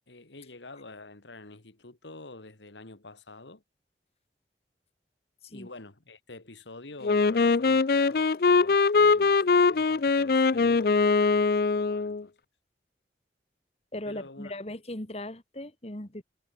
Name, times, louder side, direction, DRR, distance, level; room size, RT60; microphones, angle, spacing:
voice 1, 0.1-3.6 5.5-12.3 14.1-14.5, left 2 dB, 85° left, 2.1 m, -47 dB
Wind instrument woodwind instrument, 7.0-12.2, left 4 dB, 55° left, 0.5 m, -22 dB
voice 2, 13.9-16.2, left 1 dB, 35° left, 2.0 m, -38 dB
head